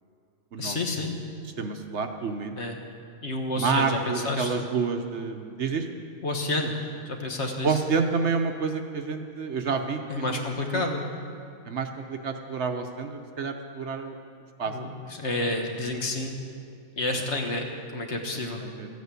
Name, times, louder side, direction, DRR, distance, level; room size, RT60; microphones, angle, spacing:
voice 1, 0.6-1.1 2.6-2.8 3.2-4.5 6.2-6.8 7.0-7.8 10.1-11.0 14.6-16.3 17.0-18.6, left 2 dB, 55° left, 2 dB, 1.7 m, -30 dB
voice 2, 1.6-2.6 3.5-5.9 7.6-10.4 10.7-10.8 11.7-14.2 14.6-15.0 18.3-18.9, right 5 dB, 60° right, 5 dB, 1.1 m, -29 dB
14.0 x 9.6 x 8.3 m, 2.4 s
omnidirectional pair, 1.4 m